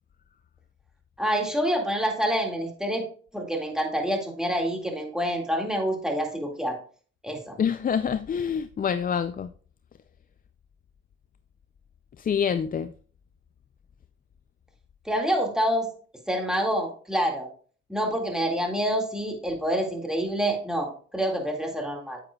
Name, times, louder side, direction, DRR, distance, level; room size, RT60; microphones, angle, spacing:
voice 1, 1.2-3.1 3.3-6.8 7.2-7.6 15.1-15.9 16.3-17.5 17.9-22.2, equal, ahead, 2.0 m, -27 dB
voice 2, 7.6-9.5 12.2-12.9, left 7 dB, 30° left, 0.4 m, -26 dB
9.1 x 7.8 x 2.3 m
cardioid pair, 90°, 30 cm